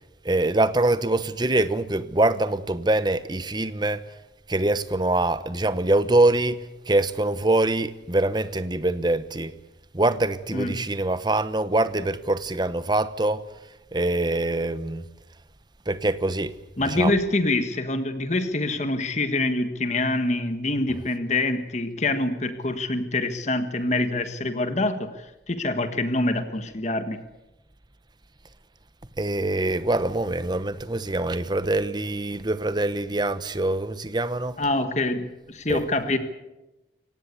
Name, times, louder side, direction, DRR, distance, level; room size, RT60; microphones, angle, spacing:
voice 1, 0.2-4.0 4.5-9.5 9.9-13.4 13.9-15.0 15.9-16.5 16.8-17.1 29.2-34.6 35.7-35.8, right 2 dB, 25° right, 1.0 m, -24 dB
voice 2, 10.5-10.9 16.8-27.2 34.6-36.2, left 2 dB, 40° left, 1.6 m, -25 dB
24.5 x 18.5 x 8.4 m
head